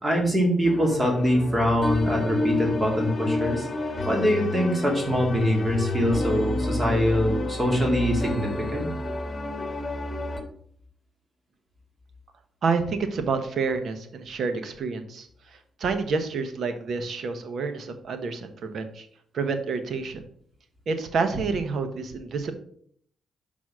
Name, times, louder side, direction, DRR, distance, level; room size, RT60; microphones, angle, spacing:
voice 1, 0.0-3.7 4.1-8.9, equal, 25° right, 0 dB, 2.0 m, -23 dB
sound 1, 0.6-10.4, left 2 dB, 35° left, 1.3 m, -30 dB
voice 2, 12.6-19.1 19.3-20.2 20.9-22.5, right 4 dB, 65° right, 8 dB, 1.0 m, -28 dB
6.2 x 4.0 x 6.0 m, 0.62 s
cardioid pair, 85°, 0 cm